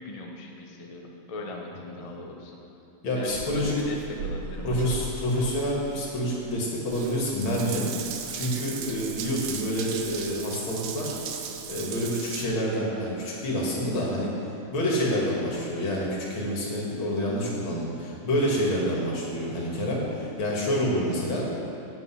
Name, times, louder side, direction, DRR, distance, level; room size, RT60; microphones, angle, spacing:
voice 1, 0.0-2.6 3.1-5.0 15.3-15.4, left 2 dB, 50° left, 0 dB, 0.4 m, -39 dB
voice 2, 3.0-3.8 4.6-7.9 8.3-11.1 11.7-14.3 14.7-21.5, equal, 75° left, -3 dB, 2.7 m, -28 dB
Water tap faucet / Bathtub (filling or washing) / Drip, 3.3-12.5, right 7 dB, 85° right, 1.6 m, -37 dB
8.9 x 8.2 x 5.7 m, 3.0 s
omnidirectional pair, 2.3 m